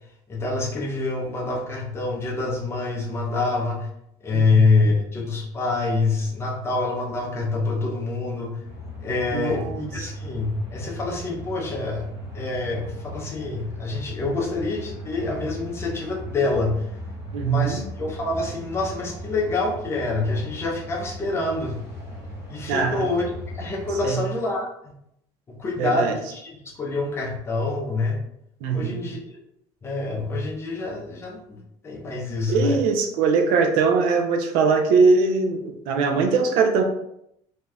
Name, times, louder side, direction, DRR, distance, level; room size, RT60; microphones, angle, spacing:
voice 1, 0.3-3.9 4.2-8.6 9.0-12.1 12.3-16.9 17.4-21.8 22.5-24.7 25.5-28.2 28.7-29.2 29.8-32.8, left 3 dB, 20° left, -1 dB, 0.5 m, -26 dB
voice 2, 4.3-4.6 9.3-10.1 17.3-17.8 22.7-23.0 24.0-24.2 25.8-26.1 28.6-29.1 32.5-36.8, right 4 dB, 75° right, 4 dB, 0.5 m, -21 dB
sound 1, 8.6-24.1, equal, 20° right, 0.8 m, -37 dB
2.6 x 2.3 x 3.3 m, 0.75 s
cardioid pair, 180°, 14 cm